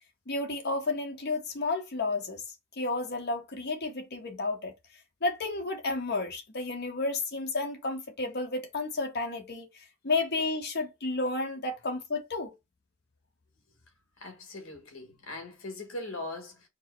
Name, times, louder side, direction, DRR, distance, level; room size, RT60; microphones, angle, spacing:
voice 1, 0.3-2.4 2.8-4.7 5.2-12.5, left 3 dB, 55° left, 1.0 m, -32 dB
voice 2, 14.2-16.7, left 2 dB, 75° left, 1.4 m, -40 dB
4.5 x 2.0 x 4.4 m
head